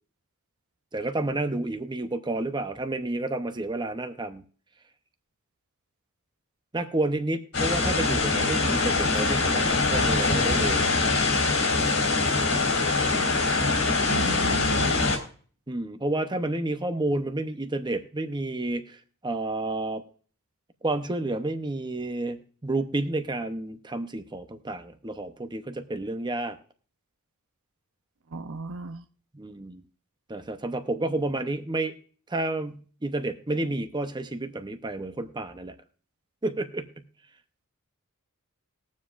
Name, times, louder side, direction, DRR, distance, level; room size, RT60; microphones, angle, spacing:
voice 1, 0.9-4.4 6.7-10.9 15.7-20.0 20.8-26.6 29.3-29.8 30.3-31.9 32.3-35.7 36.4-37.0, right 2 dB, 20° right, 8 dB, 0.8 m, -30 dB
sound 1, 7.5-15.2, left 3 dB, 70° left, 3.1 m, -23 dB
voice 2, 14.1-15.1 28.3-29.0, right 3 dB, 65° right, 10 dB, 0.6 m, -36 dB
20.5 x 7.4 x 2.5 m, 0.43 s
head